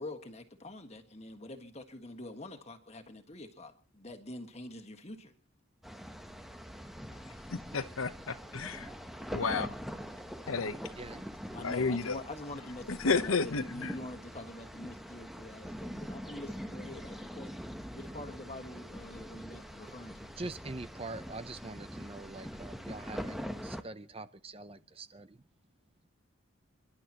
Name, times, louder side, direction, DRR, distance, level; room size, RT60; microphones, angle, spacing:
voice 1, 0.0-5.3 11.5-17.6 17.9-20.3, left 1 dB, 30° left, 1.6 m, -45 dB
sound 1, 5.8-23.8, equal, ahead, 0.9 m, -43 dB
voice 2, 7.5-8.9 9.3-9.8 10.5-10.8 11.6-12.2 12.9-13.9, left 4 dB, 80° left, 0.9 m, -32 dB
voice 3, 10.8-11.5 20.4-25.4, right 2 dB, 25° right, 0.6 m, -44 dB
29.0 x 11.5 x 3.0 m
head